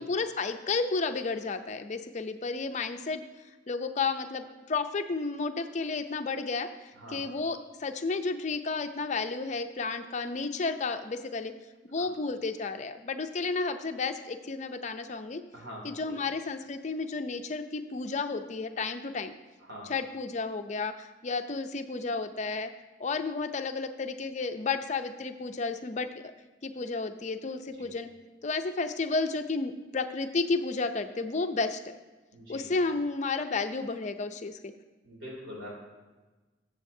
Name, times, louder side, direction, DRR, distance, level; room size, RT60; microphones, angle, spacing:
voice 1, 0.0-3.2 3.7-6.7 7.1-11.5 11.9-15.4 15.8-19.3 19.9-22.7 23.0-26.3 26.6-28.1 28.4-32.0 32.5-34.7, left 4 dB, 40° left, 8 dB, 0.5 m, -32 dB
voice 2, 15.5-16.1 19.6-19.9 27.8-27.9 32.3-32.7 35.0-35.8, equal, 90° right, -2 dB, 2.9 m, -44 dB
13.5 x 7.1 x 2.7 m, 1.2 s
head